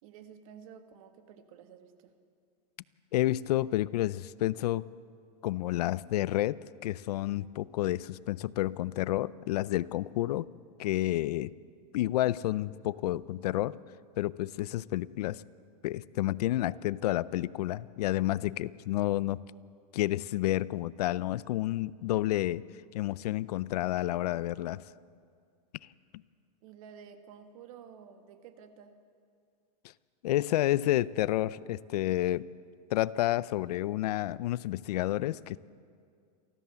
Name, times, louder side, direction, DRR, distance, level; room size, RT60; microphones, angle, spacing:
voice 1, 0.0-2.1 26.6-29.0, right 7 dB, 55° right, 8 dB, 1.7 m, -51 dB
voice 2, 3.1-4.9 5.4-10.5 10.8-11.5 11.9-13.8 14.2-15.4 15.8-19.4 19.9-22.6 22.9-24.8 30.2-32.5 32.9-35.6, left 15 dB, 70° left, 20 dB, 0.5 m, -30 dB
28.5 x 13.0 x 6.9 m, 2.3 s
supercardioid pair, 160°, 21 cm